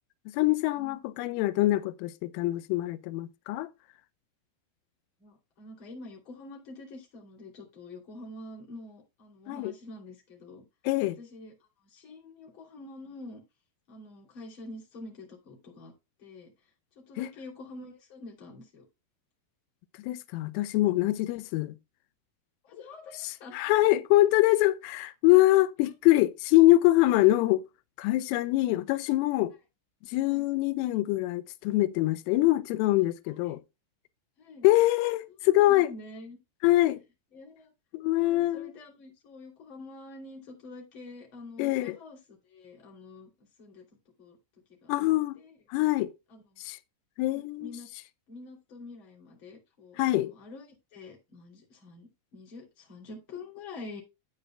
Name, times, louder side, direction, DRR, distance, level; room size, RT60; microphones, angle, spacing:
voice 1, 0.3-3.7 9.5-9.7 10.9-11.2 17.2-17.3 20.0-21.8 23.2-27.6 28.0-29.5 30.1-33.6 34.6-35.9 36.6-37.0 37.9-38.7 41.6-42.0 44.9-45.4 45.7-46.1 46.6-46.8 47.2-47.7 50.0-50.3, left 17 dB, 90° left, 3.2 m, -24 dB
voice 2, 5.2-10.7 11.2-11.5 11.8-13.4 13.9-15.9 16.2-16.5 16.9-18.8 22.6-23.6 25.8-25.9 27.2-27.3 28.4-28.5 30.3-30.5 33.3-33.6 34.4-34.7 35.4-36.4 37.3-37.7 38.2-43.3 43.6-43.8 44.2-44.4 44.8-45.0 45.4-45.6 46.3-46.4 47.3-47.9 48.3-50.6 50.9-54.0, left 2 dB, 30° left, 2.9 m, -46 dB
12.5 x 8.7 x 2.2 m
omnidirectional pair, 5.6 m